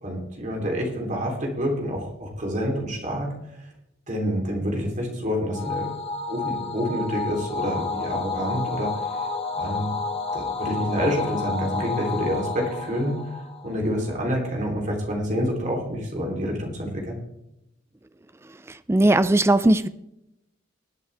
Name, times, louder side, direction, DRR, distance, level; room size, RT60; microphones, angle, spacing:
voice 1, 0.0-3.3 4.1-5.9 6.3-8.9 9.5-10.0 10.3-13.2 13.6-17.2, equal, 40° right, 3.3 m, -27 dB
sound 1, 5.5-14.1, left 4 dB, 30° left, 1.5 m, -30 dB
voice 2, 18.9-19.9, right 1 dB, 15° right, 0.4 m, -18 dB
20.5 x 8.3 x 3.4 m
head